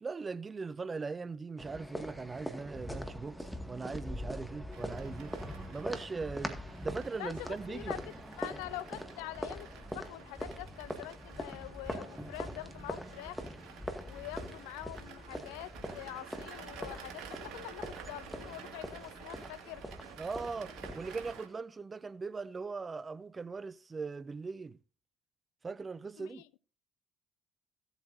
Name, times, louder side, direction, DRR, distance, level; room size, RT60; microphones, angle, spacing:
voice 1, 0.0-5.3 5.7-7.9 20.2-24.8 25.6-26.4, right 4 dB, 35° right, 0.5 m, -40 dB
sound 1, 1.6-21.3, equal, ahead, 1.9 m, -43 dB
sound 2, 4.7-21.5, right 7 dB, 70° right, 2.0 m, -52 dB
voice 2, 7.2-9.7 9.9-13.4 14.0-19.8 26.2-26.4, left 17 dB, 80° left, 0.4 m, -45 dB
16.5 x 8.1 x 2.6 m
hypercardioid pair, 50°, 0 cm